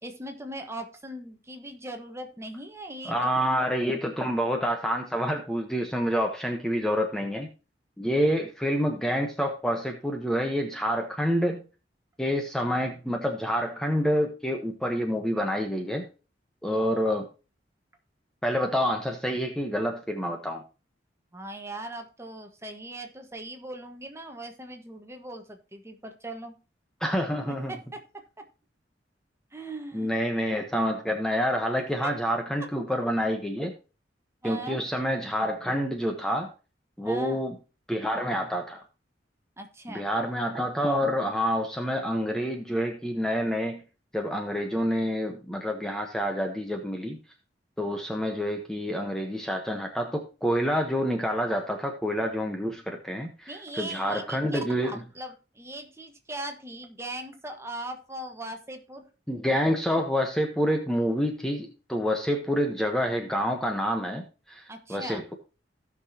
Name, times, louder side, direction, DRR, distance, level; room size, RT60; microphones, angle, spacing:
voice 1, 0.0-3.3 21.3-26.6 27.5-28.0 29.5-30.1 32.0-32.1 34.4-34.8 37.0-37.4 39.6-40.1 53.5-59.1 64.7-65.2, right 1 dB, 15° right, 4 dB, 1.4 m, -39 dB
voice 2, 3.0-7.5 8.0-11.7 12.2-16.0 16.6-17.3 18.4-20.6 27.0-27.7 29.9-33.7 34.4-36.5 37.0-37.6 37.9-38.8 39.9-43.8 44.1-47.2 47.8-54.9 59.3-65.3, equal, 5° left, 3 dB, 1.0 m, -28 dB
16.5 x 6.0 x 2.8 m, 0.32 s
head